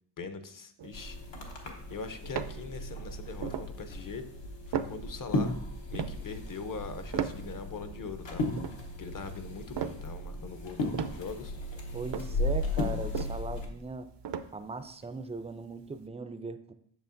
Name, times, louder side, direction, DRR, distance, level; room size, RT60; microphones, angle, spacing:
voice 1, 0.2-1.2 1.9-4.3 4.7-5.6 5.9-8.4 9.0-11.5, left 4 dB, 50° left, 10 dB, 0.7 m, -41 dB
sound 1, 0.8-3.1 3.4-3.7 4.2-4.3 4.5-7.9 8.3-10.6 10.9-14.9 15.4-15.5, right 8 dB, 70° right, 0.5 m, -37 dB
sound 2, 0.9-13.7, left 2 dB, 85° left, 1.2 m, -36 dB
voice 2, 11.9-14.1 14.5-16.7, right 3 dB, 15° right, 10 dB, 0.3 m, -39 dB
8.1 x 6.8 x 2.6 m, 0.68 s
wide cardioid pair, 105°, 43 cm